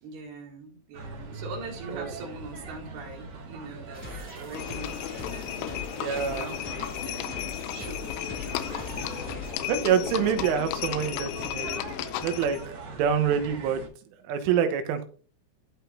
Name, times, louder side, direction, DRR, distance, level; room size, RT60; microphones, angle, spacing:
voice 1, 0.0-9.1, right 3 dB, 60° right, 0 dB, 3.9 m, -43 dB
sound 1, 0.9-13.9, right 3 dB, 45° right, 1.5 m, -42 dB
sound 2, 3.9-9.5, left 2 dB, 15° left, 0.4 m, -42 dB
Livestock farm animals working animals, 4.5-12.7, left 13 dB, 90° left, 3.2 m, -34 dB
voice 2, 6.0-6.5 9.7-11.8 12.2-12.6 12.9-13.8 14.3-15.0, right 8 dB, 85° right, 7 dB, 3.7 m, -26 dB
13.5 x 5.9 x 2.8 m, 0.40 s
omnidirectional pair, 5.7 m